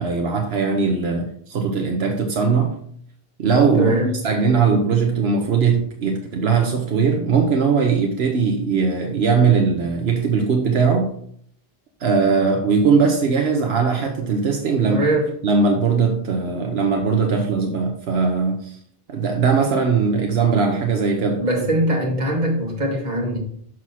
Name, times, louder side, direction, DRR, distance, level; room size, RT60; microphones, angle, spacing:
voice 1, 0.0-2.8 3.4-11.1 12.0-15.0 15.4-18.8 19.1-21.5, right 5 dB, 80° right, 1.1 m, -20 dB
voice 2, 3.8-4.1 14.8-15.3 21.4-23.4, right 1 dB, 45° right, 1.9 m, -21 dB
6.2 x 6.1 x 4.2 m
omnidirectional pair, 1.0 m